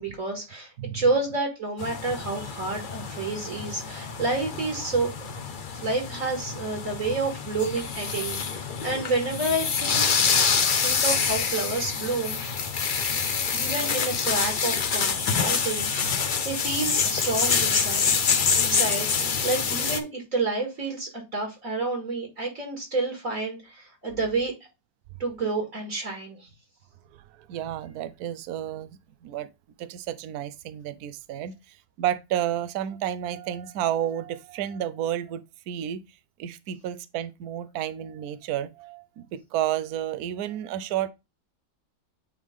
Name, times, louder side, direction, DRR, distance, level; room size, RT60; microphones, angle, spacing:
voice 1, 0.0-5.3 5.8-10.4 10.8-12.8 13.5-18.1 18.6-24.5 25.2-26.5, right 3 dB, 50° right, 2.2 m, -29 dB
sound 1, 1.8-20.0, left 6 dB, 50° left, 0.6 m, -26 dB
sound 2, 14.1-14.3 14.8-15.0 15.3-15.7 16.0-16.5 16.8-17.2 17.5-17.9 18.3-18.6 19.0-19.2, left 6 dB, 80° left, 1.6 m, -36 dB
voice 2, 27.1-29.5 29.8-36.0 36.4-41.1, right 11 dB, 70° right, 1.1 m, -31 dB
8.9 x 3.3 x 3.6 m
omnidirectional pair, 1.8 m